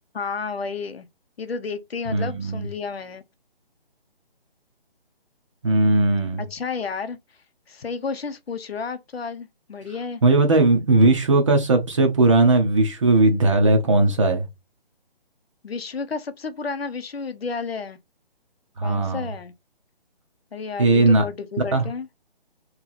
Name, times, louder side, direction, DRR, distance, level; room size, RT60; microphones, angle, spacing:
voice 1, 0.1-1.1 1.4-3.2 6.5-7.2 7.7-10.2 15.6-18.0 18.8-19.5 20.5-22.1, left 5 dB, 85° left, 0.7 m, -31 dB
voice 2, 2.1-2.7 5.6-6.5 10.2-14.5 18.8-19.3 20.8-21.2 21.7-21.9, right 2 dB, 30° right, 0.6 m, -18 dB
3.0 x 2.9 x 3.9 m
hypercardioid pair, 155°, 30 cm